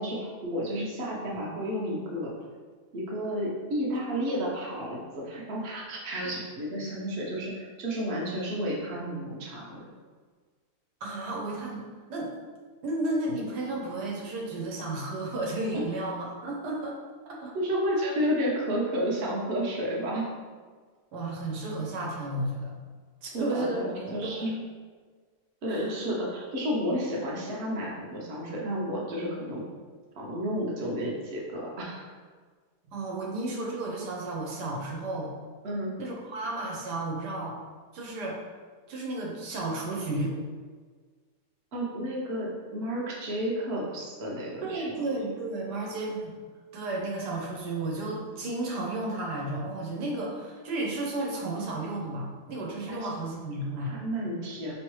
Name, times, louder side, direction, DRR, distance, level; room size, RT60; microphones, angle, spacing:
voice 1, 0.0-2.3 2.9-9.9 17.5-20.3 23.3-24.6 25.6-29.6 30.2-32.2 35.6-35.9 41.7-44.9 52.9-53.1 53.8-54.7, equal, 45° right, -3 dB, 0.9 m, -31 dB
voice 2, 11.0-11.8 12.1-12.3 12.8-17.0 17.2-17.5 21.1-22.7 23.2-24.6 25.7-26.1 32.9-35.3 36.0-37.6 37.9-38.4 38.9-40.4 44.6-46.3 46.7-54.0, right 2 dB, 80° right, -2 dB, 1.4 m, -33 dB
4.8 x 3.1 x 3.1 m, 1.5 s
omnidirectional pair, 1.7 m